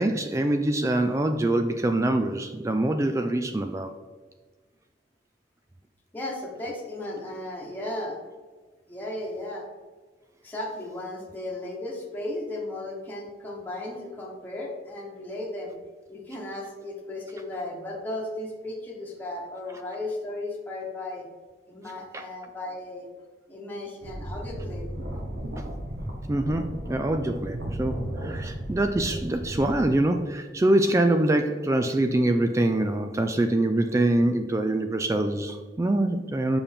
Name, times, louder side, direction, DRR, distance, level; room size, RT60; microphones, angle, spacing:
voice 1, 0.0-3.9 22.1-22.2 25.6-25.7 26.3-36.6, right 1 dB, 15° right, 6 dB, 0.3 m, -24 dB
voice 2, 6.1-8.2 8.9-9.6 10.4-15.7 16.1-21.2 21.7-23.1 23.5-24.9, left 1 dB, 10° left, -3 dB, 1.2 m, -35 dB
sound 1, 24.0-29.9, right 1 dB, 70° right, 1.2 m, -35 dB
6.9 x 5.6 x 3.5 m, 1.4 s
head